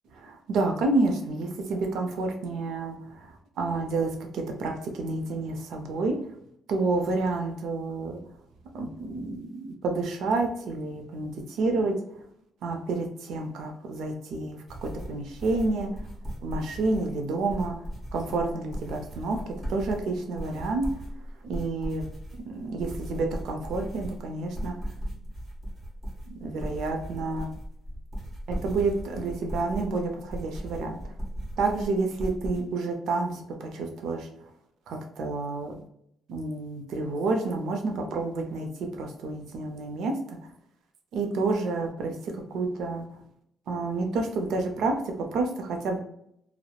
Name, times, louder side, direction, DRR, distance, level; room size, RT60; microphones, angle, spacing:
voice 1, 0.1-6.2 6.7-8.2 8.7-12.0 12.6-16.0 16.4-17.8 18.1-21.0 21.4-24.8 26.3-27.5 28.5-31.0 31.6-34.3 34.9-35.8 36.3-40.5 41.1-43.1 43.7-46.0, right 3 dB, 70° right, 3 dB, 0.5 m, -29 dB
sound 1, 14.7-32.6, equal, 20° right, 1.3 m, -37 dB
2.8 x 2.0 x 2.3 m, 0.73 s
cardioid pair, 165°, 0 cm